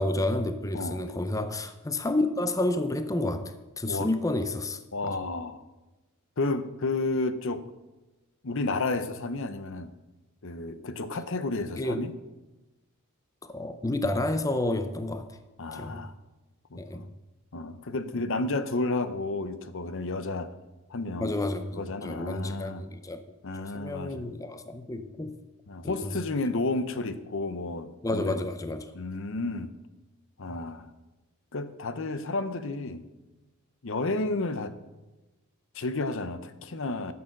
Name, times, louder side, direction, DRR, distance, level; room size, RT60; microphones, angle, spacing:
voice 1, 0.0-5.2 11.8-12.1 13.4-15.4 15.7-16.1 16.8-17.1 21.2-23.2 23.5-25.4 25.8-26.2 28.0-28.9 30.5-30.6, left 2 dB, 15° left, 9 dB, 0.5 m, -30 dB
voice 2, 0.7-1.0 3.9-4.1 4.9-5.6 6.4-7.7 8.4-9.9 10.4-12.1 15.6-16.1 16.7-17.1 17.5-20.5 20.9-21.3 21.7-22.8 23.4-24.2 25.7-28.4 28.9-29.7 30.4-30.9 31.5-33.1 33.8-34.7 35.7-37.1, left 2 dB, 65° left, 12 dB, 0.8 m, -31 dB
12.0 x 7.0 x 6.5 m, 1.1 s
head